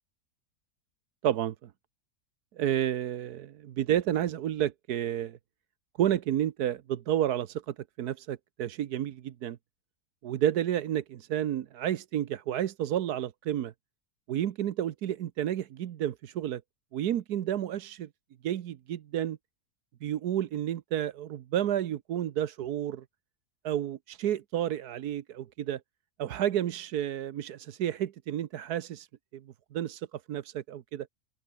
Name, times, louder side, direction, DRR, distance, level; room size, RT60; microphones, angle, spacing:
voice 1, 1.2-1.7 2.6-5.4 6.0-9.6 10.2-13.7 14.3-16.6 16.9-18.1 18.4-19.4 20.0-23.0 23.6-25.8 26.2-29.1 29.3-29.4 29.7-31.1, right 11 dB, 80° right, 1.4 m, -31 dB
open air
omnidirectional pair, 1.7 m